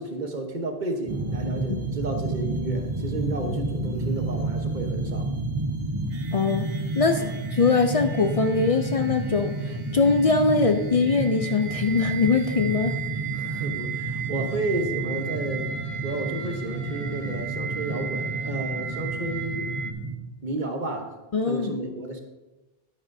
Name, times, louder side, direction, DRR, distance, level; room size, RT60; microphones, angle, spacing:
voice 1, 0.0-5.3 7.1-7.3 13.3-15.7 16.0-19.7 20.4-21.2 21.5-22.2, right 2 dB, 50° right, 4 dB, 1.1 m, -32 dB
sound 1, 1.1-20.2, right 2 dB, 30° right, 1.0 m, -31 dB
sound 2, 1.1-19.9, right 6 dB, 70° right, 1.1 m, -37 dB
voice 2, 6.3-6.7 7.0-13.0 21.3-21.8, left 4 dB, 50° left, 6 dB, 0.4 m, -22 dB
11.0 x 9.6 x 2.7 m, 1.1 s
omnidirectional pair, 1.1 m